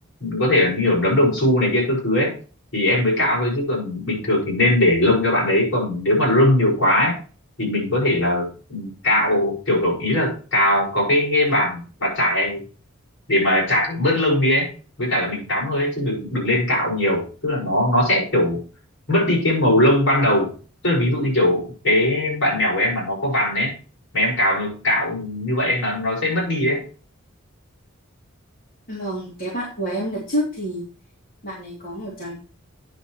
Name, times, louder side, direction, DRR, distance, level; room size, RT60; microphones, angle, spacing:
voice 1, 0.2-2.4 2.7-7.2 7.6-12.6 13.3-14.7 15.0-18.6 19.1-20.5 20.8-23.7 24.1-26.8, left 1 dB, 65° left, -2 dB, 5.8 m, -20 dB
voice 2, 28.9-30.8 31.4-32.4, equal, 40° left, -5 dB, 3.1 m, -28 dB
9.5 x 6.7 x 4.5 m, 0.37 s
head